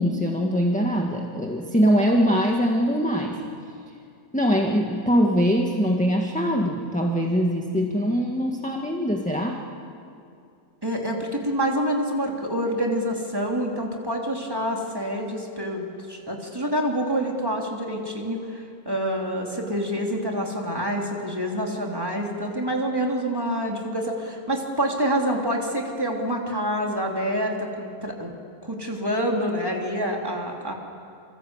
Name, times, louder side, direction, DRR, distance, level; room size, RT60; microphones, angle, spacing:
voice 1, 0.0-3.4 4.3-9.6, equal, 5° left, 1 dB, 1.6 m, -22 dB
voice 2, 10.8-28.4 28.6-30.7, equal, 15° right, 0 dB, 3.1 m, -27 dB
27.0 x 25.5 x 8.2 m, 2.5 s
omnidirectional pair, 1.6 m